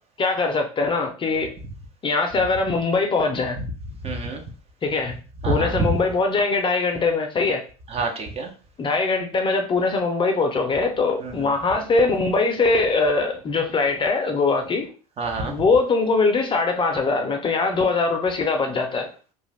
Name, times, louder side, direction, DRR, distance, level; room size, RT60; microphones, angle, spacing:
voice 1, 0.2-1.5 2.0-3.6 4.8-5.1 5.5-7.6 8.8-14.9 15.5-19.1, left 3 dB, 25° left, 4 dB, 0.6 m, -22 dB
voice 2, 4.0-4.4 5.4-6.0 7.9-8.5 11.2-11.5 15.2-15.5, right 2 dB, 30° right, 4 dB, 0.6 m, -26 dB
2.4 x 2.4 x 3.3 m, 0.37 s
hypercardioid pair, 85°, 20 cm